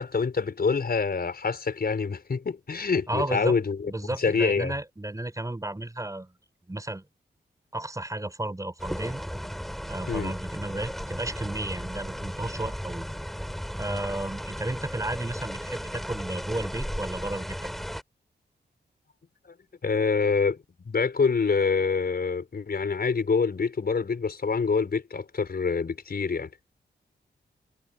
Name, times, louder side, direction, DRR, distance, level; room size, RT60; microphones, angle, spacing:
voice 1, 0.0-3.9 4.2-4.7 10.1-10.3 19.4-19.6 19.8-26.5, left 5 dB, 55° left, 5.4 m, -26 dB
voice 2, 3.1-3.5 3.8-6.3 6.7-7.0 7.7-9.2 9.9-13.1 13.7-17.7, right 1 dB, 20° right, 4.6 m, -33 dB
sound 1, 8.8-18.0, equal, ahead, 7.4 m, -35 dB
wide cardioid pair, 95°, 18 cm